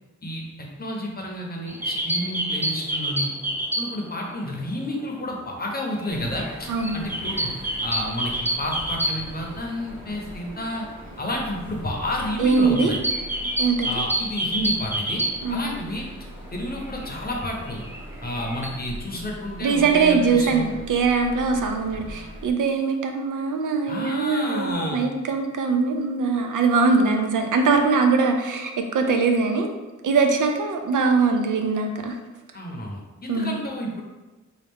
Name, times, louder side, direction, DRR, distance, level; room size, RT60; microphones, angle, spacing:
voice 1, 0.2-3.3 3.8-7.5 7.8-10.9 11.2-13.0 13.8-15.2 15.5-16.1 16.5-17.8 18.2-20.7 23.9-25.0 32.5-34.0, left 1 dB, 30° left, -1 dB, 0.7 m, -30 dB
sound 1, 1.7-4.2 4.4-4.5 4.8-9.7 10.0-10.1 10.3-10.6 11.1-16.1 16.5-18.8, right 1 dB, 10° right, 0.4 m, -28 dB
sound 2, 6.1-22.5, equal, 65° right, 1.1 m, -41 dB
voice 2, 6.7-7.0 12.4-12.9 13.6-13.9 15.4-15.7 19.6-29.8 30.0-32.2 33.3-33.6, right 4 dB, 85° right, 5 dB, 0.5 m, -22 dB
4.3 x 2.3 x 3.5 m, 1.2 s
wide cardioid pair, 115°, 30 cm